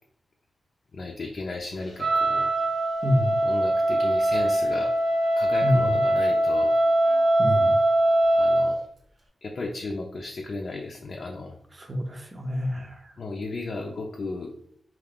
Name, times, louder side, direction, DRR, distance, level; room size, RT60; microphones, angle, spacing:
voice 1, 0.9-2.5 3.4-4.9 5.4-6.7 8.3-8.8 9.4-11.6 13.2-14.5, left 3 dB, 60° left, 0 dB, 0.4 m, -35 dB
Wind instrument woodwind instrument, 2.0-8.8, right 1 dB, 65° right, 0.8 m, -22 dB
voice 2, 3.0-3.4 5.6-5.9 7.4-7.8 11.8-13.1, equal, 40° right, 4 dB, 0.6 m, -27 dB
2.4 x 2.3 x 3.4 m, 0.66 s
cardioid pair, 60°, 0 cm